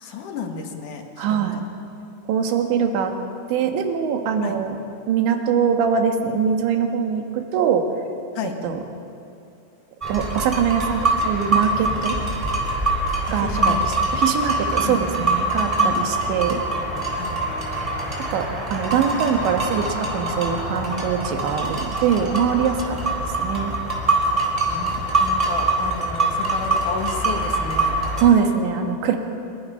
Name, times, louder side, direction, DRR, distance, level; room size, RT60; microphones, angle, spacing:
voice 1, 0.0-1.5 4.4-4.6 8.4-8.5 13.3-13.8 14.4-15.0 15.7-15.9 17.1-17.4 23.5-23.8 24.6-28.0, left 6 dB, 55° left, 3 dB, 2.6 m, -32 dB
voice 2, 1.2-1.6 2.3-3.1 3.5-4.8 5.1-7.8 8.6-8.8 10.1-12.2 13.3-16.6 18.3-18.5 18.7-23.7 28.2-29.2, right 7 dB, 85° right, 4 dB, 3.9 m, -22 dB
sound 1, 10.0-28.3, right 2 dB, 10° right, 3.6 m, -24 dB
26.5 x 22.0 x 5.7 m, 2.5 s
omnidirectional pair, 5.1 m